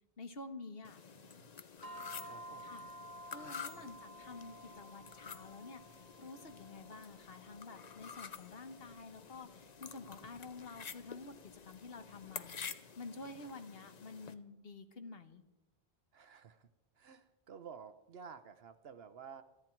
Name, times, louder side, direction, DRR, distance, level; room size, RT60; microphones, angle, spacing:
voice 1, 0.2-1.0 2.6-2.8 3.3-11.3 11.6-15.4, left 3 dB, 70° left, 9 dB, 1.5 m, -50 dB
sound 1, 0.8-14.3, left 6 dB, 45° left, 0.8 m, -50 dB
voice 2, 1.1-1.5 2.2-2.9 3.4-4.0 16.1-16.7 16.9-19.4, right 6 dB, 75° right, 10 dB, 1.1 m, -53 dB
sound 2, 1.8-12.3, equal, 20° left, 1.4 m, -54 dB
28.5 x 10.0 x 4.5 m, 0.99 s
omnidirectional pair, 1.0 m